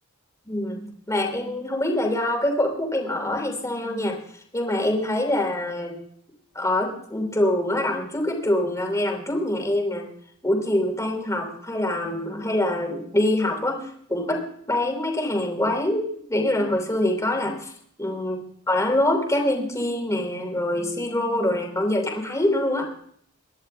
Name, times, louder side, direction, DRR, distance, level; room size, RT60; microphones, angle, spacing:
voice 1, 0.5-4.2 4.5-6.0 6.5-10.0 10.4-17.7 18.0-18.4 18.7-22.9, left 1 dB, 15° left, 2 dB, 2.8 m, -25 dB
22.5 x 10.5 x 3.3 m, 0.63 s
head